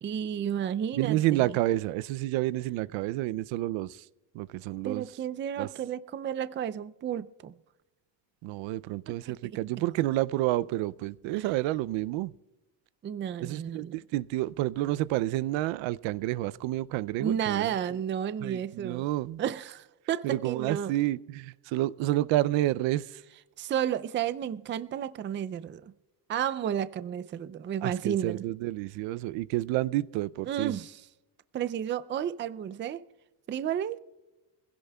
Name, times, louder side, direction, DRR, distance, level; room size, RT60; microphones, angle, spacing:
voice 1, 0.0-1.6 4.8-7.6 9.3-9.6 11.3-11.5 13.0-14.0 17.2-19.1 19.4-20.9 23.6-25.9 26.3-28.4 30.5-31.0 31.5-33.0 33.5-34.0, right 9 dB, 25° right, 0.4 m, -32 dB
voice 2, 1.0-4.0 4.3-5.1 5.6-5.7 8.4-12.3 13.4-17.7 18.4-19.4 20.2-23.2 27.8-30.7, right 16 dB, 80° right, 0.5 m, -29 dB
24.0 x 16.5 x 2.3 m
cardioid pair, 120°, 46 cm